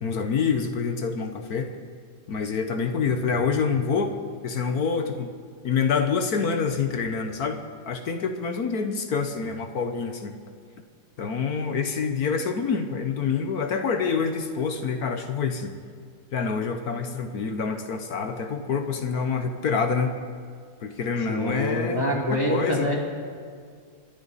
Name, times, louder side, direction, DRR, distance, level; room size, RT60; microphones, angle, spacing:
voice 1, 0.0-1.7 2.3-4.1 4.4-5.3 5.6-10.3 11.2-15.8 16.3-20.2 20.8-22.2 22.5-22.9, left 5 dB, 55° left, 6 dB, 1.3 m, -26 dB
voice 2, 21.3-23.0, left 1 dB, 10° left, -3 dB, 2.7 m, -25 dB
28.5 x 10.0 x 4.1 m, 2.1 s
omnidirectional pair, 2.1 m